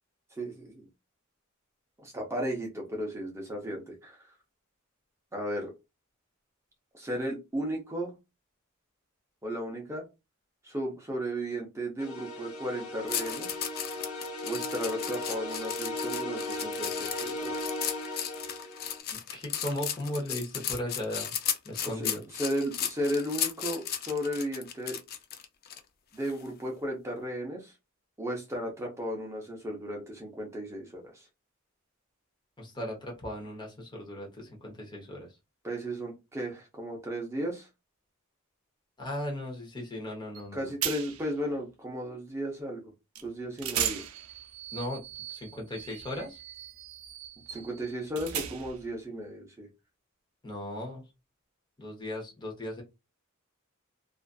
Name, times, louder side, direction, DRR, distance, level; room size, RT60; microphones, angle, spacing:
voice 1, 0.4-0.9 2.0-4.2 5.3-5.7 6.9-8.1 9.4-10.1 10.6-13.6 14.4-17.7 21.8-25.0 26.1-27.7 28.2-31.3 35.6-37.7 40.5-42.9 43.2-44.0 47.5-49.7, equal, 15° right, 0 dB, 0.6 m, -35 dB
sound 1, 12.0-19.0, left 1 dB, 70° left, 0.8 m, -37 dB
sound 2, 13.1-25.8 26.2-26.5, left 9 dB, 45° left, 0.4 m, -35 dB
voice 2, 19.1-21.3 21.6-22.2 32.6-35.3 39.0-40.7 44.7-45.0 45.3-46.4 50.4-51.0 51.8-52.8, left 1 dB, 20° left, -1 dB, 0.8 m, -37 dB
sound 3, 40.3-40.5 40.8-41.3 43.1-43.3 43.6-48.9, right 10 dB, 80° right, 0.4 m, -37 dB
2.5 x 2.4 x 2.3 m, 0.24 s
head